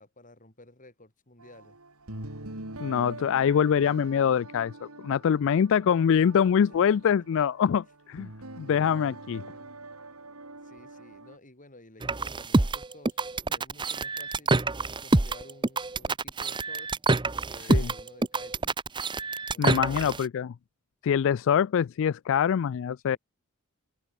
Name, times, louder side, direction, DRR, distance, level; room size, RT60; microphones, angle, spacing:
voice 1, 0.0-1.8 5.5-5.7 6.7-7.1 9.4-9.8 10.6-14.6 15.0-16.9 17.5-18.7 19.5-20.2 23.1-23.2, left 2 dB, 35° left, 7.6 m, -53 dB
sound 1, 1.4-11.4, right 2 dB, 80° right, 5.3 m, -44 dB
voice 2, 2.8-8.3 8.6-9.4 17.7-17.9 19.6-20.5 21.0-23.2, left 8 dB, 60° left, 0.3 m, -24 dB
sound 2, 12.0-20.2, right 2 dB, 20° right, 0.8 m, -26 dB
head